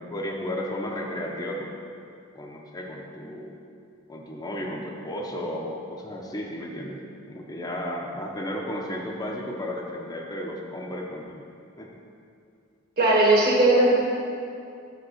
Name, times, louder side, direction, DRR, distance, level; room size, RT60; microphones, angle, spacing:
voice 1, 0.0-1.8 2.3-3.6 4.1-11.4 11.8-11.9, left 1 dB, 20° left, -1 dB, 0.6 m, -34 dB
voice 2, 13.0-14.0, right 2 dB, 50° right, -3 dB, 1.6 m, -18 dB
6.4 x 5.0 x 6.3 m, 2.4 s
head